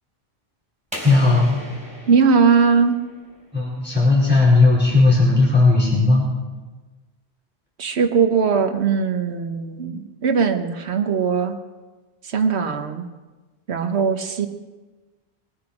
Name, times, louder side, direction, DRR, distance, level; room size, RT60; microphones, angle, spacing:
sound 1, 0.9-3.6, equal, 5° right, 4.2 m, -37 dB
voice 1, 1.0-1.6 3.5-6.3, left 3 dB, 10° left, -7 dB, 4.5 m, -16 dB
voice 2, 2.1-3.0 7.8-11.5 12.2-13.0 13.7-14.5, right 5 dB, 85° right, 7 dB, 1.3 m, -19 dB
22.0 x 9.8 x 4.9 m, 1.3 s
omnidirectional pair, 1.1 m